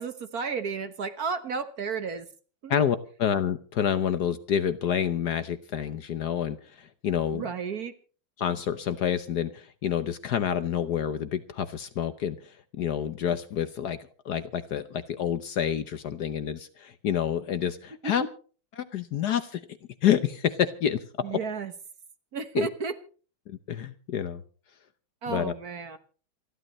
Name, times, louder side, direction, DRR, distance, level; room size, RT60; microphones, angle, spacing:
voice 1, 0.0-2.3 2.6-2.7 7.3-7.9 18.0-18.1 21.2-21.7 22.3-22.9 25.2-26.0, right 5 dB, 50° right, 10 dB, 1.5 m, -32 dB
voice 2, 2.7-7.4 8.4-14.0 14.2-18.2 18.8-19.6 20.0-21.0 21.3-21.4 22.5-22.7 23.5-24.4 25.3-25.5, left 9 dB, 60° left, 11 dB, 1.2 m, -28 dB
28.0 x 11.5 x 3.1 m, 0.39 s
omnidirectional pair, 2.2 m